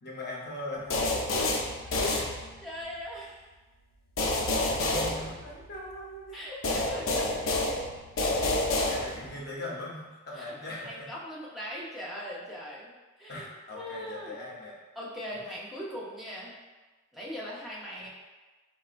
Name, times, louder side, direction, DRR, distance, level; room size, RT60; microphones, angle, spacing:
voice 1, 0.0-1.2 4.7-6.4 8.9-11.1 13.3-14.7, left 1 dB, 50° left, -4 dB, 0.7 m, -40 dB
sound 1, 0.9-2.8 4.2-5.9 6.6-9.4, left 2 dB, 90° left, 0.5 m, -29 dB
voice 2, 1.8-3.5 6.3-7.8 10.3-10.5 10.8-12.9 13.2-13.5 13.7-14.4 15.0-16.5 17.1-18.1, equal, ahead, -7 dB, 0.5 m, -40 dB
4.1 x 2.2 x 2.4 m, 1.2 s
head